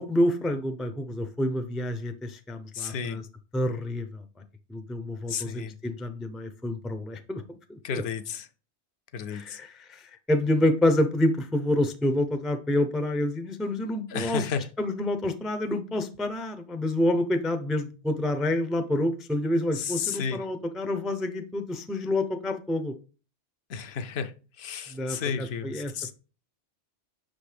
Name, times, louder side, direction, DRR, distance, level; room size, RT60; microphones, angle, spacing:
voice 1, 0.0-3.2 3.5-4.2 4.7-8.0 9.3-14.5 14.8-22.9 24.9-25.9, left 1 dB, ahead, 0.3 m, -28 dB
voice 2, 2.7-3.2 5.3-5.7 7.8-8.5 9.1-9.6 14.1-14.7 19.7-20.4 23.7-26.1, left 6 dB, 65° left, 0.8 m, -32 dB
6.1 x 5.1 x 3.3 m
omnidirectional pair, 1.2 m